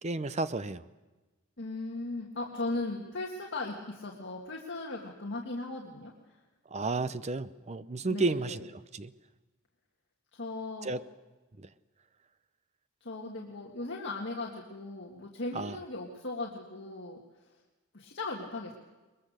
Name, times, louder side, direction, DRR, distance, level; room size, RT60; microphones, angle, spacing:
voice 1, 0.0-0.8 6.7-9.1 10.8-11.0 11.6-11.7 15.5-15.8, right 3 dB, 30° right, 14 dB, 0.6 m, -32 dB
voice 2, 1.6-6.4 8.1-8.6 10.3-11.0 13.0-17.2 17.9-18.7, left 2 dB, 55° left, -1 dB, 1.8 m, -38 dB
21.5 x 21.5 x 6.6 m, 1.2 s
head